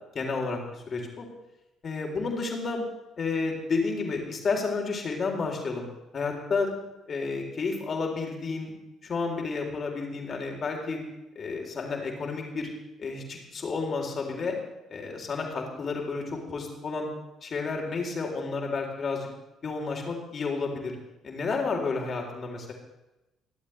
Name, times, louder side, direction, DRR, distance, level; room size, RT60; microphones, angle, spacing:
voice 1, 0.1-0.6 0.9-1.3 1.8-2.8 3.2-5.9 6.1-6.8 7.1-8.7 9.0-11.0 11.4-12.7 13.0-14.6 14.9-17.1 17.4-19.3 19.6-20.9 21.2-22.7, left 4 dB, 40° left, 1 dB, 3.6 m, -31 dB
25.5 x 11.5 x 3.3 m, 0.96 s
figure-of-eight pair, 45°, 0 cm